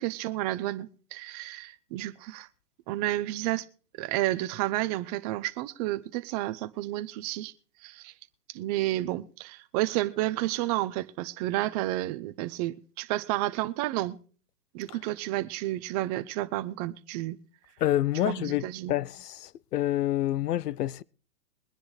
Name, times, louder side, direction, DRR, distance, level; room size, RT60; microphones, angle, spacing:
voice 1, 0.0-2.5 2.9-3.6 4.0-7.5 7.8-8.1 8.5-14.2 14.7-17.4 18.3-19.0, right 16 dB, 25° right, 0.7 m, -31 dB
voice 2, 17.8-18.6 18.9-19.1 19.7-21.0, left 13 dB, 80° left, 0.7 m, -26 dB
22.5 x 10.0 x 3.2 m
hypercardioid pair, 145°, 47 cm